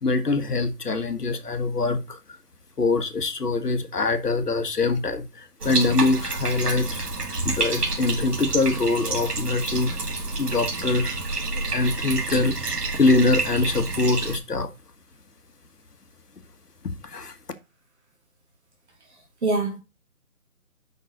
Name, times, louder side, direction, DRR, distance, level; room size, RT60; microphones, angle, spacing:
voice 1, 0.0-2.2 2.8-7.0 7.4-10.0 10.4-11.2 11.5-12.5 12.9-14.7 17.0-17.3, left 3 dB, 85° left, 1.7 m, -24 dB
Bathtub (filling or washing), 5.6-14.4, right 3 dB, 80° right, 2.2 m, -29 dB
voice 2, 19.1-19.8, right 3 dB, 45° right, 2.7 m, -26 dB
6.0 x 5.5 x 6.1 m
figure-of-eight pair, 160°, 46 cm